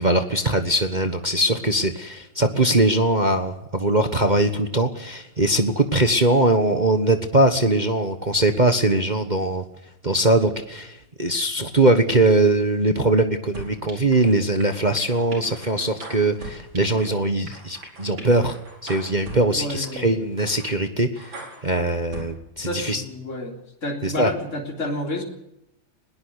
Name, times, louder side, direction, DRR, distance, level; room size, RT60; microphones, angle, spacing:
voice 1, 0.0-9.6 10.0-21.3 21.6-23.0 24.0-24.3, right 2 dB, 25° right, 7 dB, 1.3 m, -21 dB
sound 1, 13.5-14.3 14.6-17.2 17.5-19.4 19.8-20.0 20.4-20.7 21.2-22.3, right 2 dB, 85° right, 5.5 m, -39 dB
voice 2, 19.5-20.1 22.6-23.5 23.8-25.2, left 1 dB, 40° left, 1 dB, 3.9 m, -29 dB
21.0 x 18.0 x 8.1 m, 0.84 s
omnidirectional pair, 2.1 m